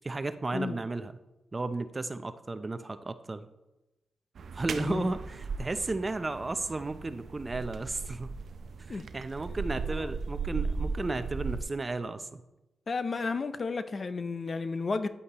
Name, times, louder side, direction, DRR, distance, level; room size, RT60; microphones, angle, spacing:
voice 1, 0.0-1.2 1.5-3.5 4.5-8.3 8.9-12.4, right 2 dB, 30° right, 11 dB, 0.6 m, -34 dB
sound 1, 4.4-11.6, right 5 dB, 70° right, 0.5 m, -37 dB
voice 2, 12.9-15.1, left 4 dB, 45° left, 11 dB, 0.5 m, -32 dB
9.6 x 8.4 x 3.0 m, 0.98 s
cardioid pair, 70°, 0 cm